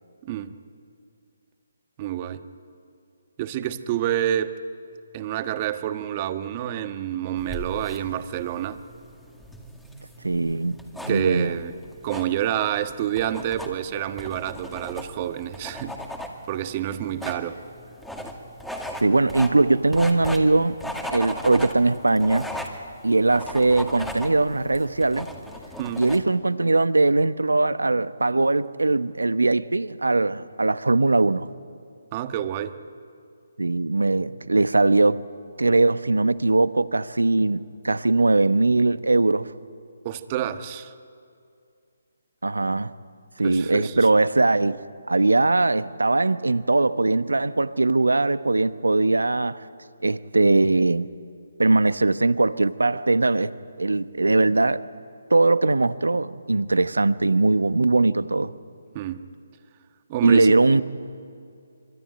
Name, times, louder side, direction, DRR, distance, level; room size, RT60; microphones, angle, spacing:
voice 1, 0.2-0.5 2.0-2.4 3.4-4.6 5.1-8.8 11.1-11.7 12.0-16.0 16.5-17.6 25.8-26.1 32.1-32.8 40.0-40.9 43.4-44.1 58.9-59.2 60.1-60.8, right 11 dB, 30° right, 1.4 m, -28 dB
sound 1, 7.4-26.2, left 1 dB, 5° left, 2.2 m, -37 dB
voice 2, 9.9-10.8 11.0-11.5 19.0-20.8 21.1-22.5 23.0-25.3 26.0-31.5 33.6-35.2 35.6-39.5 42.4-42.9 43.4-44.8 45.1-49.6 50.0-51.1 51.6-53.5 53.8-54.8 55.3-58.5 60.2-60.8, right 2 dB, 85° right, 1.0 m, -20 dB
25.0 x 25.0 x 9.2 m
figure-of-eight pair, 150°, 0 cm